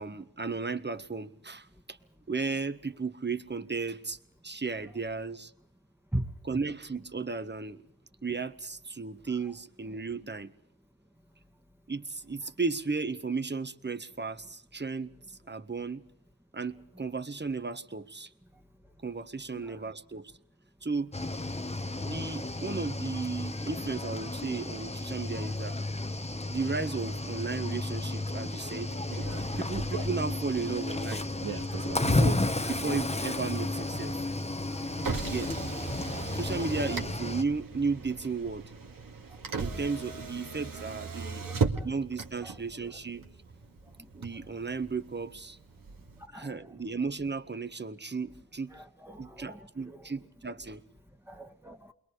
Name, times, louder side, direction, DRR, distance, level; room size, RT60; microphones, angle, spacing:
voice 1, 0.0-1.7 2.3-4.2 4.4-5.5 6.4-7.8 8.2-10.5 11.9-15.1 15.5-16.0 16.5-18.3 19.0-20.3 20.8-21.1 22.0-25.8 26.5-28.9 29.6-31.3 32.0-34.1 35.2-35.5 36.3-38.6 39.6-41.4 41.8-43.2 44.1-45.6 46.3-48.7 49.2-50.8, right 4 dB, 30° right, 1.6 m, -34 dB
Cricket / Waves surf, 21.1-37.4, left 2 dB, 15° left, 1.2 m, -32 dB
Motor vehicle (road), 29.1-46.3, right 4 dB, 65° right, 2.1 m, -38 dB
voice 2, 41.4-41.9 42.4-42.5 46.3-46.6 48.7-49.7 51.3-51.8, right 1 dB, 5° right, 1.7 m, -38 dB
29.0 x 22.0 x 5.1 m
cardioid pair, 40°, 36 cm